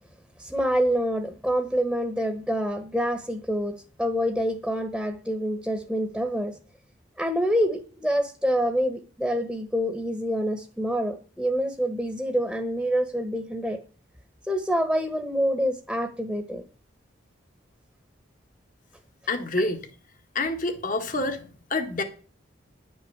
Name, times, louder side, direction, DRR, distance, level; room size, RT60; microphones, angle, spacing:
voice 1, 0.4-6.5 7.2-13.8 14.5-16.6, equal, ahead, 1.2 m, -26 dB
voice 2, 19.3-19.8 20.4-21.4 21.7-22.0, left 2 dB, 45° left, 1.7 m, -27 dB
11.0 x 6.3 x 8.7 m
head